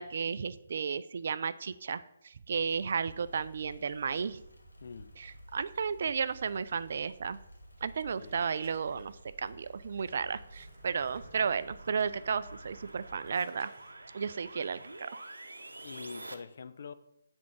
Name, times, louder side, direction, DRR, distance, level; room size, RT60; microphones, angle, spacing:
voice 1, 0.0-4.4 5.2-7.4 7.8-9.1 9.4-13.7 14.1-15.1, right 6 dB, 50° right, 0.3 m, -33 dB
sound 1, 2.5-13.3, right 1 dB, 75° left, 1.4 m, -53 dB
voice 2, 4.8-5.1 8.2-8.4 15.8-16.9, left 5 dB, 50° left, 0.4 m, -45 dB
sound 2, 8.2-11.8 12.5-15.5, right 2 dB, 30° right, 1.0 m, -59 dB
sound 3, 9.8-16.3, right 2 dB, 70° right, 0.7 m, -49 dB
8.3 x 3.5 x 6.0 m
figure-of-eight pair, 140°, 0 cm